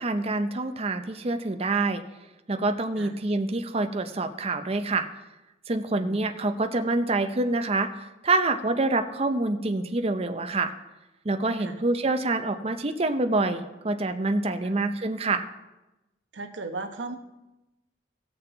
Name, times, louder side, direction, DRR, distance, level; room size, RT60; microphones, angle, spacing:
voice 1, 0.0-2.0 2.5-5.1 5.7-10.7 11.2-15.4, right 2 dB, 35° right, 7 dB, 0.7 m, -26 dB
voice 2, 16.3-17.2, right 3 dB, 85° right, 6 dB, 1.1 m, -36 dB
18.0 x 6.7 x 3.9 m, 1.0 s
head